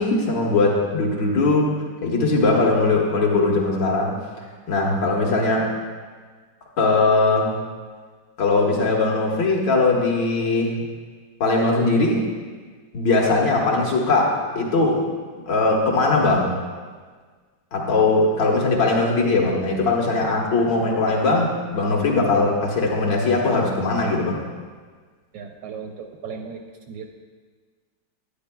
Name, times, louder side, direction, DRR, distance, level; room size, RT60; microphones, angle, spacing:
voice 1, 0.0-1.7 2.0-4.2 4.7-5.7 6.8-7.6 8.4-10.8 11.4-12.3 12.9-15.1 15.5-16.6 17.7-24.4, left 3 dB, 65° left, -3 dB, 1.8 m, -20 dB
voice 2, 25.3-26.6 26.9-27.1, right 6 dB, 75° right, 3 dB, 1.1 m, -36 dB
9.8 x 9.5 x 2.2 m, 1.5 s
omnidirectional pair, 2.2 m